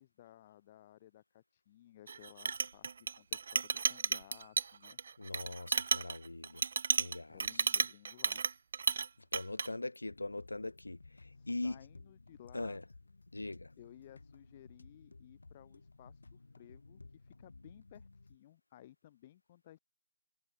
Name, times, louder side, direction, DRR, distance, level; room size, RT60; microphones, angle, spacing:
voice 1, 0.0-2.9 3.2-5.0 7.3-8.4 11.3-12.8 13.8-19.8, left 13 dB, 15° left, 2.2 m, -58 dB
Chink clink, 2.1-9.1 9.3-9.7, right 5 dB, 35° right, 0.4 m, -33 dB
voice 2, 5.2-6.6 7.0-7.7 9.3-11.0 11.5-11.8 12.5-12.8 13.3-13.7, left 2 dB, 90° left, 0.8 m, -41 dB
sound 1, 10.1-18.4, left 3 dB, 60° left, 8.0 m, -57 dB
figure-of-eight pair, 175°, 0 cm